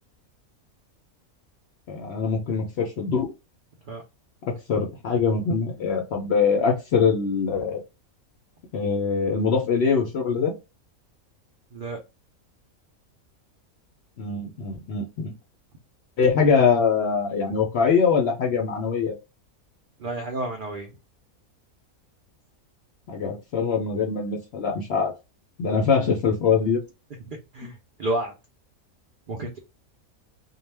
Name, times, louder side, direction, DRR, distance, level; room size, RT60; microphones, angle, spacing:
voice 1, 1.9-3.3 4.5-7.8 8.7-10.6 14.2-15.3 16.2-19.1 23.1-25.1 25.6-26.8, left 5 dB, 65° left, 2 dB, 0.6 m, -23 dB
voice 2, 20.0-20.9 27.3-28.3 29.3-29.6, right 2 dB, 75° right, 2 dB, 0.4 m, -31 dB
2.3 x 2.1 x 3.2 m, 0.26 s
omnidirectional pair, 1.5 m